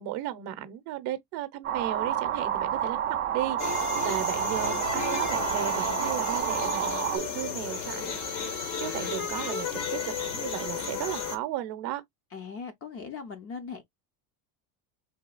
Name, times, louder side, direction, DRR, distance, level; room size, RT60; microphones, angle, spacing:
voice 1, 0.0-8.2 8.5-12.0, right 13 dB, 55° right, 0.7 m, -35 dB
sound 1, 1.6-7.2, right 10 dB, 25° right, 0.3 m, -29 dB
sound 2, 3.6-11.4, left 6 dB, 70° left, 1.4 m, -33 dB
voice 2, 12.3-13.8, left 5 dB, 30° left, 0.5 m, -39 dB
4.1 x 2.7 x 2.3 m
cardioid pair, 150°, 48 cm